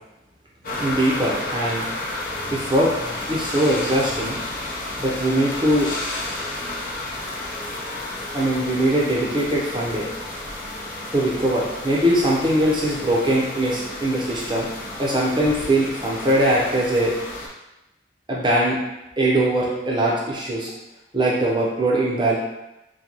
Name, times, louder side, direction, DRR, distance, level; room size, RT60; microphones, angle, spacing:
sound 1, 0.6-17.5, left 2 dB, 45° left, 0.6 m, -31 dB
voice 1, 0.8-1.8 2.5-2.9 3.3-4.4 5.0-5.9 8.3-10.1 11.1-14.7 15.0-17.1 18.3-18.8 19.2-20.7 21.1-22.3, right 1 dB, 25° right, -5 dB, 0.7 m, -21 dB
3.8 x 2.2 x 3.0 m, 0.96 s
head